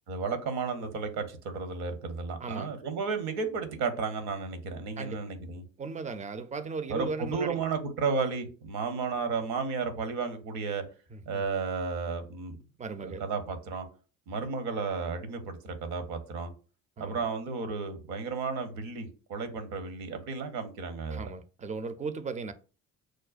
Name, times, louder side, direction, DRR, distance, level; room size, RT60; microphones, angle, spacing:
voice 1, 0.1-5.6 6.9-10.8 11.3-12.6 13.0-13.9 14.3-16.5 17.0-21.3, right 4 dB, 65° right, 0.9 m, -33 dB
voice 2, 2.4-2.7 5.0-5.3 5.8-7.6 11.1-11.4 12.8-13.2 17.0-17.2 21.1-22.5, right 4 dB, 20° right, 0.4 m, -37 dB
6.3 x 2.2 x 2.4 m
hypercardioid pair, 55°, 40 cm